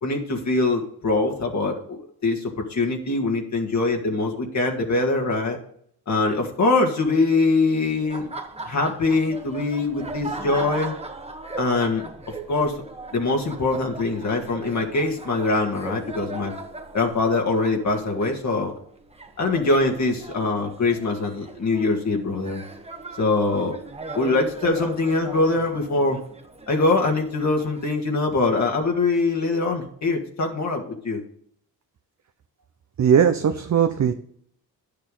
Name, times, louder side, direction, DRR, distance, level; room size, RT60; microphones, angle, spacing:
voice 1, 0.0-5.6 6.1-8.3 8.7-10.9 11.6-12.0 12.5-12.7 13.1-16.5 16.9-18.7 19.4-22.6 23.2-23.8 24.1-26.2 26.7-31.2, left 3 dB, 50° left, 1 dB, 2.0 m, -23 dB
Laughter, 8.0-27.9, right 2 dB, 15° right, 1.3 m, -38 dB
voice 2, 33.0-34.1, right 8 dB, 50° right, 7 dB, 0.8 m, -19 dB
10.5 x 6.7 x 3.9 m, 0.63 s
cardioid pair, 80°, 37 cm